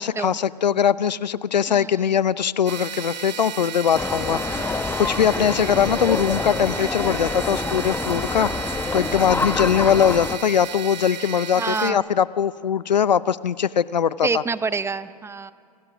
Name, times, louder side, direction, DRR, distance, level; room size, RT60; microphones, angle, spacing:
voice 1, 0.0-14.4, left 8 dB, 85° left, 18 dB, 0.7 m, -21 dB
voice 2, 1.7-2.1 4.4-4.8 11.6-12.1 14.2-15.5, right 4 dB, 10° right, 15 dB, 0.8 m, -28 dB
sound 1, 2.7-11.9, right 8 dB, 80° right, 1.1 m, -34 dB
sound 2, 3.9-10.4, left 3 dB, 10° left, 1.0 m, -27 dB
27.5 x 27.0 x 6.2 m, 2.3 s
hypercardioid pair, 100°, 21 cm